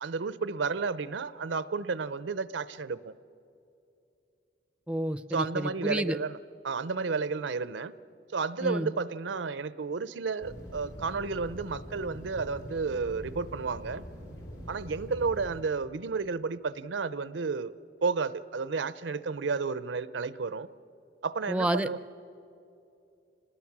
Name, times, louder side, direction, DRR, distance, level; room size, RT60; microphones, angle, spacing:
voice 1, 0.0-3.1 5.3-6.4 6.6-7.9 8.3-14.0 14.7-17.7 18.0-20.7 21.2-22.0, right 4 dB, 85° right, 16 dB, 0.6 m, -32 dB
voice 2, 4.9-6.2 8.6-8.9 21.5-21.9, right 1 dB, 5° right, 12 dB, 0.5 m, -29 dB
sound 1, 10.4-15.6, equal, 75° left, 3.2 m, -44 dB
27.0 x 20.0 x 6.0 m, 2.7 s
head